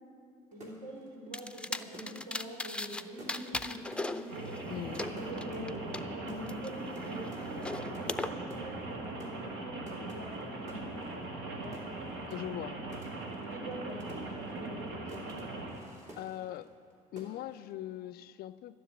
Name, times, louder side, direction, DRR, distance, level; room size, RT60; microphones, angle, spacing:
sound 1, 0.5-16.9 17.2-17.7, right 1 dB, 40° right, 2.9 m, -54 dB
voice 1, 0.5-4.6 5.0-11.0 11.5-11.8 13.5-15.3, equal, 60° right, -1 dB, 3.8 m, -44 dB
sound 2, 1.3-3.0 3.3-6.0 6.5-8.3, left 2 dB, 5° left, 0.5 m, -38 dB
Rain, 4.3-15.8, right 2 dB, 80° right, 1.5 m, -40 dB
voice 2, 4.7-5.1 5.5-5.7 12.3-12.8 16.2-16.7 17.1-18.8, left 13 dB, 55° left, 16 dB, 0.4 m, -41 dB
12.5 x 7.3 x 9.3 m, 2.4 s
hypercardioid pair, 60°, 19 cm